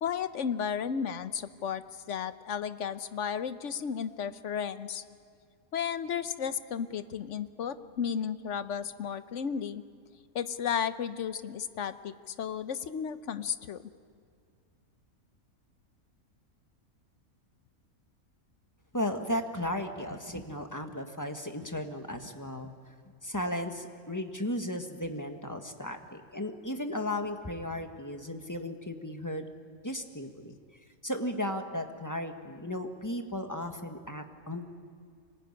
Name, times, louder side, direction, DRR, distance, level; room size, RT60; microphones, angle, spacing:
voice 1, 0.0-5.0 5.7-9.8 10.3-13.8, left 7 dB, 60° left, 12 dB, 1.1 m, -33 dB
voice 2, 18.9-22.7 23.2-29.4 29.8-30.5 31.0-34.6, left 1 dB, 15° left, 5 dB, 1.4 m, -35 dB
25.5 x 20.0 x 9.8 m, 2.2 s
omnidirectional pair, 1.5 m